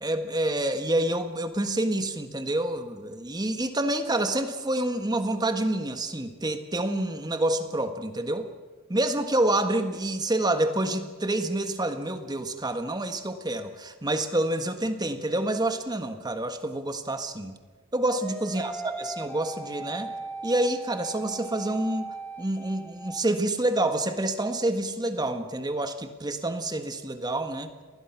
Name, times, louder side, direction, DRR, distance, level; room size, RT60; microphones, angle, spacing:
voice 1, 0.0-8.5 8.9-17.5 17.9-20.1 20.4-27.7, right 1 dB, 20° right, 8 dB, 1.5 m, -28 dB
sound 1, 18.1-23.2, right 2 dB, 5° left, 1.1 m, -38 dB
29.0 x 20.5 x 6.0 m, 1.4 s
head